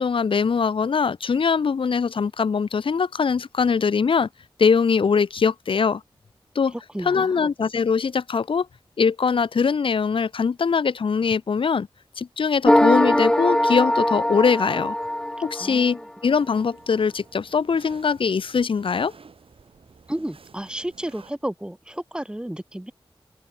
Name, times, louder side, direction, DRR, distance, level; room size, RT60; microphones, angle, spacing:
voice 1, 0.0-4.3 4.6-6.0 6.5-6.7 7.0-8.7 9.0-11.9 12.2-15.0 15.4-19.1, left 5 dB, 70° left, 0.6 m, -22 dB
voice 2, 6.7-7.5 15.5-16.0 20.1-22.9, right 1 dB, 10° right, 2.3 m, -32 dB
sound 1, 12.6-16.0, left 1 dB, 10° left, 0.6 m, -21 dB
sound 2, 16.3-21.3, right 5 dB, 80° right, 4.2 m, -51 dB
open air
wide cardioid pair, 100°, 9 cm